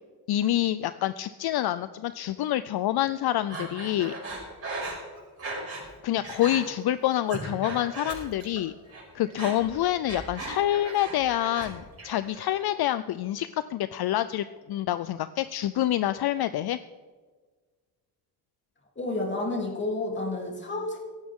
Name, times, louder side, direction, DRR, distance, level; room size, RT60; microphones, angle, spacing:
voice 1, 0.3-4.1 6.0-8.7 9.1-16.8, left 13 dB, 70° left, 13 dB, 0.5 m, -27 dB
Breathing, 3.5-5.9 6.2-6.6 7.1-8.6 8.9-11.7 12.0-12.6, right 2 dB, 35° right, 5.6 m, -37 dB
voice 2, 18.9-21.0, left 2 dB, 30° left, 0 dB, 3.2 m, -30 dB
17.0 x 15.0 x 3.7 m, 1.4 s
wide cardioid pair, 160°, 39 cm